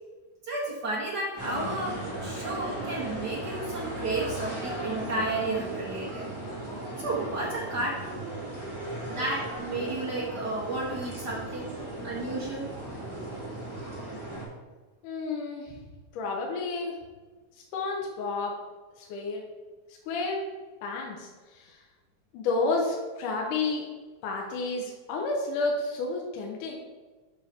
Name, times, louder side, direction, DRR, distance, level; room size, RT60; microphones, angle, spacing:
voice 1, 0.4-6.3 7.0-8.2 9.1-11.7 12.0-12.7, right 2 dB, 55° right, -4 dB, 1.1 m, -32 dB
sound 1, 1.4-14.4, right 1 dB, 10° left, 2.4 m, -36 dB
voice 2, 15.0-15.8 16.1-16.9 17.6-18.6 19.0-19.4 20.1-20.4 20.8-21.8 22.3-23.9 24.2-26.7, left 3 dB, 75° left, 0 dB, 2.4 m, -31 dB
7.3 x 5.7 x 5.1 m, 1.3 s
omnidirectional pair, 3.8 m